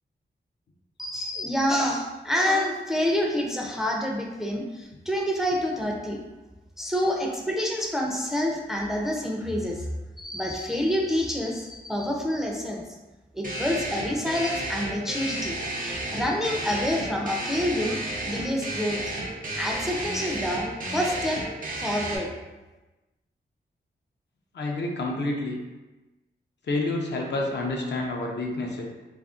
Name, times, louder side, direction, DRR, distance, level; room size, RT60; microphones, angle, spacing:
voice 1, 1.0-6.2 6.8-12.8 13.3-19.0 19.6-21.4 21.8-22.3, left 1 dB, ahead, 0 dB, 0.4 m, -27 dB
sound 1, 13.4-22.2, right 1 dB, 45° right, 0.6 m, -32 dB
voice 2, 24.5-25.6 26.6-28.8, left 2 dB, 65° left, 0 dB, 0.5 m, -28 dB
2.4 x 2.1 x 3.5 m, 1.1 s
cardioid pair, 55°, 19 cm